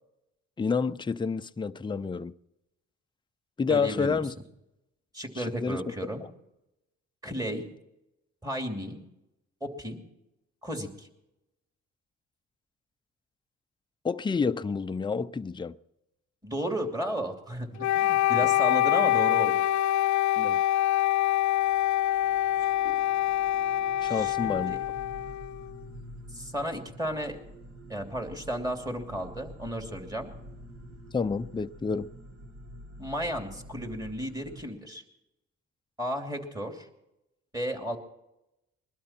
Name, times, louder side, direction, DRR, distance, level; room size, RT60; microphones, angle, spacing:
voice 1, 0.6-2.3 3.6-4.3 5.4-5.8 14.0-15.8 20.4-20.6 24.0-24.8 31.1-32.1, left 5 dB, 15° left, 0.5 m, -29 dB
voice 2, 3.7-4.2 5.1-6.3 7.2-7.6 8.4-9.0 9.6-10.0 10.6-11.1 16.4-19.6 22.6-23.0 24.0-24.8 26.3-27.4 27.9-30.3 33.0-35.0 36.0-36.9 37.5-38.0, equal, 10° right, 2.8 m, -34 dB
Wind instrument woodwind instrument, 17.8-25.9, left 14 dB, 70° left, 0.4 m, -25 dB
sound 1, 21.0-34.6, right 1 dB, 50° right, 1.9 m, -47 dB
22.0 x 12.5 x 4.4 m
cardioid pair, 90°, 30 cm